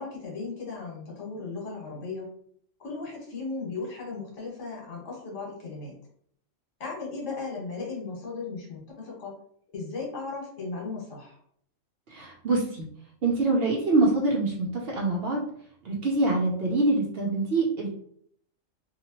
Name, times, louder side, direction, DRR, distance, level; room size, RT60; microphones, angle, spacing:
voice 1, 0.0-2.3 2.8-5.9 6.8-9.3 9.7-11.3, left 4 dB, 70° left, -2 dB, 1.3 m, -36 dB
voice 2, 12.1-12.9 13.2-15.4 15.8-17.9, right 2 dB, 60° right, -1 dB, 0.7 m, -25 dB
2.8 x 2.4 x 2.9 m, 0.64 s
omnidirectional pair, 1.3 m